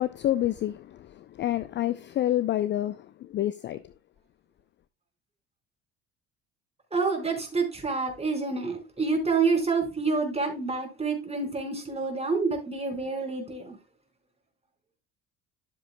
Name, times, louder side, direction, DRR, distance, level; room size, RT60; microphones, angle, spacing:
voice 1, 0.0-3.8, left 13 dB, 30° left, 0.5 m, -28 dB
voice 2, 6.9-13.8, right 4 dB, 15° right, 4.6 m, -28 dB
13.0 x 7.5 x 2.2 m
figure-of-eight pair, 55°, 37 cm